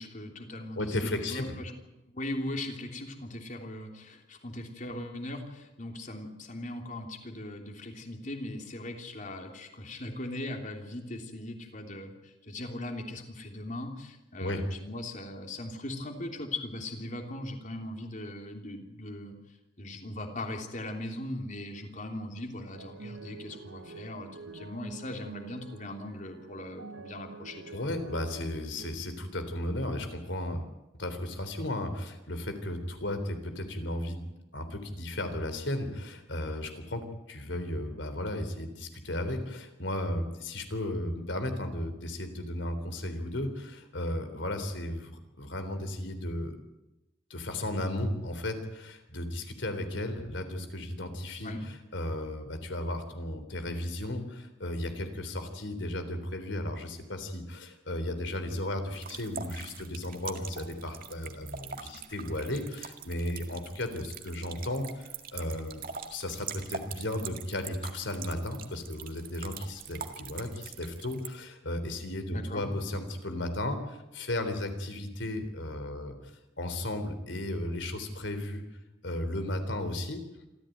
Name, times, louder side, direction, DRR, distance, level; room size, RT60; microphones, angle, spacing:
voice 1, 0.0-1.7 2.0-19.3 19.8-27.8 51.4-51.6 72.3-72.7, left 1 dB, 40° left, 4 dB, 3.2 m, -39 dB
voice 2, 0.8-1.5 14.4-14.6 27.7-34.2 34.5-46.6 47.3-65.8 66.1-78.6 79.0-80.2, left 1 dB, 70° left, 8 dB, 3.7 m, -35 dB
sound 1, 22.7-28.9, right 3 dB, 80° right, 0.9 m, -47 dB
sound 2, 58.9-71.3, right 6 dB, 45° right, 1.9 m, -43 dB
26.5 x 14.5 x 9.4 m, 0.96 s
head